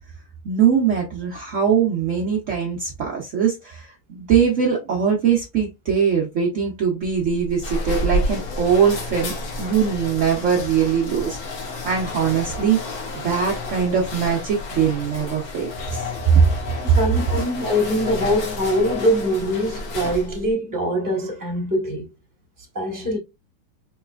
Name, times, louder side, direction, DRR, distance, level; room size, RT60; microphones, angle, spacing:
voice 1, 0.4-13.0 13.2-16.5, right 7 dB, 75° right, 0.7 m, -21 dB
sound 1, 7.0-20.5, left 2 dB, 55° left, 1.1 m, -30 dB
voice 2, 16.9-22.1 22.7-23.2, equal, 15° right, 0.8 m, -23 dB
4.2 x 3.1 x 2.3 m
omnidirectional pair, 2.4 m